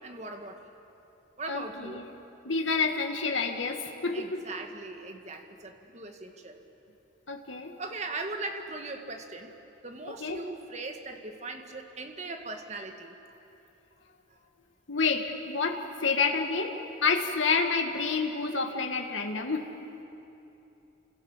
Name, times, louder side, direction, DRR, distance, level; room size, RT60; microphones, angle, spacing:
voice 1, 0.0-0.6 1.4-2.0 4.1-6.6 7.8-9.6 9.8-13.2 14.3-14.4 19.1-19.6, right 3 dB, 35° right, 5 dB, 1.8 m, -39 dB
voice 2, 1.5-2.0 2.4-4.4 7.3-7.7 10.1-10.4 14.9-19.7, left 4 dB, 75° left, 3 dB, 1.9 m, -29 dB
29.5 x 27.0 x 7.4 m, 2.9 s
head